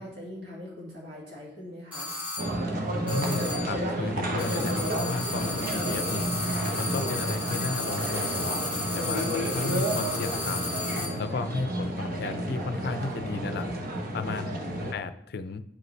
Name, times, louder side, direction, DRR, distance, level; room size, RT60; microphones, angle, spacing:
voice 1, 0.0-2.2, left 1 dB, 80° right, -5 dB, 1.8 m, -42 dB
sound 1, 1.9-2.6 3.1-3.8 4.4-11.2, left 2 dB, 10° right, 1.7 m, -34 dB
sound 2, 2.4-14.9, right 1 dB, 55° right, 1.0 m, -31 dB
voice 2, 3.1-6.3 6.8-8.6 8.9-10.7 11.2-13.7 14.1-14.6 14.9-15.6, left 3 dB, 60° left, 11 dB, 0.4 m, -34 dB
8.3 x 5.3 x 3.2 m, 0.80 s
head